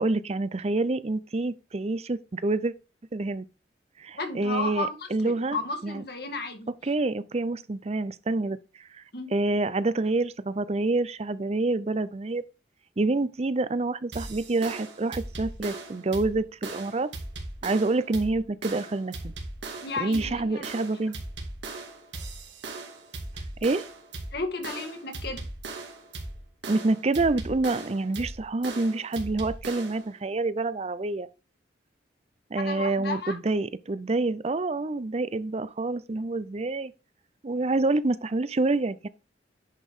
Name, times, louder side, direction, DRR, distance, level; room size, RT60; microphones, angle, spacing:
voice 1, 0.0-2.7 3.1-3.4 4.0-5.6 5.8-6.0 6.8-9.0 9.3-12.4 13.0-17.1 17.6-19.3 20.0-21.2 23.6-23.8 26.7-31.3 32.5-36.9 37.4-39.1, right 2 dB, 35° right, 0.5 m, -27 dB
voice 2, 4.1-5.0 5.2-6.7 9.1-9.3 19.8-20.7 24.3-25.4 32.6-33.3, left 3 dB, 60° left, 1.9 m, -33 dB
sound 1, 14.1-30.1, right 2 dB, 80° right, 2.3 m, -39 dB
10.5 x 5.2 x 3.7 m
head